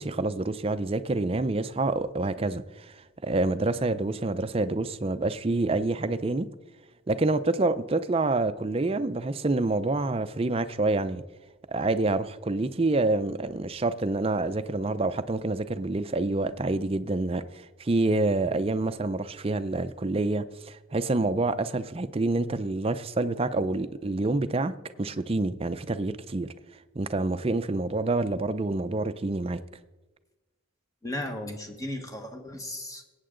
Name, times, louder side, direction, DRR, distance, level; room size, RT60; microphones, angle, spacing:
voice 1, 0.0-2.9 3.2-6.5 7.1-11.2 11.7-26.5 26.9-29.6, right 2 dB, 30° right, 0.5 m, -27 dB
voice 2, 31.0-33.0, left 1 dB, 15° left, 1.3 m, -35 dB
21.5 x 8.8 x 3.8 m
head